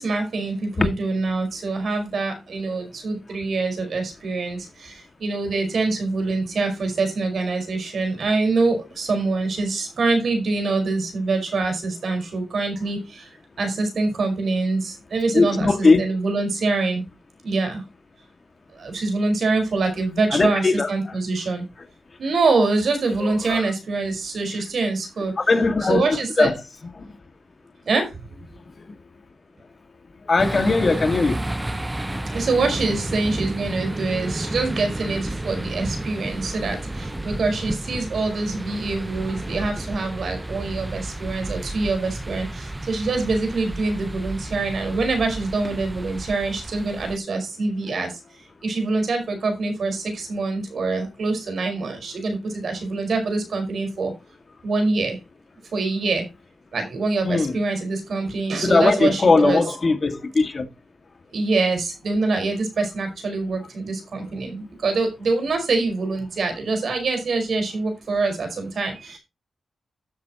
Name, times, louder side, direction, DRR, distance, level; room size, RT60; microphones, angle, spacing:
voice 1, 0.0-13.3 13.6-15.7 16.0-17.0 17.4-17.8 18.7-21.6 22.2-25.4 25.9-26.5 27.8-28.2 32.3-54.1 54.6-55.2 55.7-56.3 56.7-59.6 61.3-69.2, right 3 dB, 70° right, 5.1 m, -25 dB
voice 2, 15.3-16.0 20.3-21.2 23.2-23.7 25.4-26.6 27.0-27.1 30.3-31.4 32.1-32.2 57.2-57.6 58.6-60.6, left 3 dB, 50° left, 2.1 m, -20 dB
sound 1, 30.4-47.2, right 1 dB, 20° right, 1.0 m, -31 dB
12.5 x 7.8 x 3.0 m
cardioid pair, 45°, 0 cm